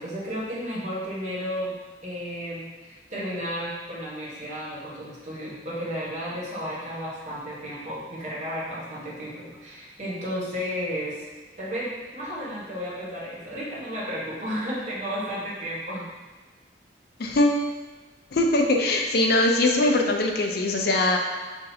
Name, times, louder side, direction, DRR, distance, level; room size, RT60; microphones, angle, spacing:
voice 1, 0.0-1.7 2.0-11.2 11.6-16.1, equal, 40° right, -7 dB, 1.1 m, -33 dB
voice 2, 17.2-17.6 18.3-21.2, left 2 dB, 60° left, 1 dB, 0.5 m, -21 dB
5.8 x 2.6 x 2.7 m, 1.3 s
head